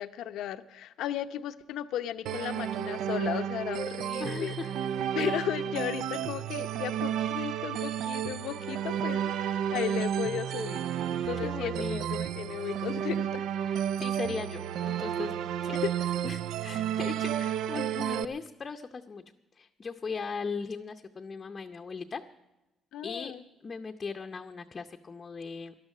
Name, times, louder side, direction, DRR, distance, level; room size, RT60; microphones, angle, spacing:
voice 1, 0.0-4.5 5.1-13.5 17.4-17.5 22.9-23.4, left 11 dB, 75° left, 11 dB, 0.7 m, -35 dB
sound 1, 2.3-18.3, right 9 dB, 70° right, 0.5 m, -32 dB
voice 2, 4.2-5.5 11.1-12.2 13.6-15.8 16.2-19.2 19.6-22.2 23.0-23.3 23.6-25.8, left 5 dB, 30° left, 4 dB, 0.7 m, -39 dB
13.0 x 11.5 x 7.3 m, 0.99 s
cardioid pair, 125°, 0 cm